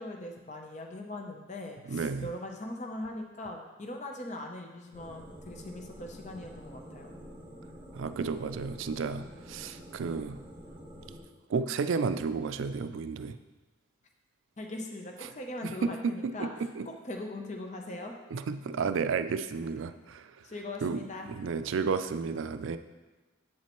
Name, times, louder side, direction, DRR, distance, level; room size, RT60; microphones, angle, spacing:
voice 1, 0.0-7.1 14.6-16.5 16.9-18.2 20.4-21.3, left 1 dB, 35° left, 2 dB, 0.7 m, -40 dB
voice 2, 1.9-2.3 7.9-10.4 11.5-13.4 15.6-16.5 16.8-16.9 18.3-20.5 20.8-22.8, right 5 dB, 85° right, 11 dB, 0.4 m, -32 dB
sound 1, 4.9-11.2, equal, 25° right, 1.1 m, -48 dB
7.8 x 7.3 x 3.0 m, 1.2 s
head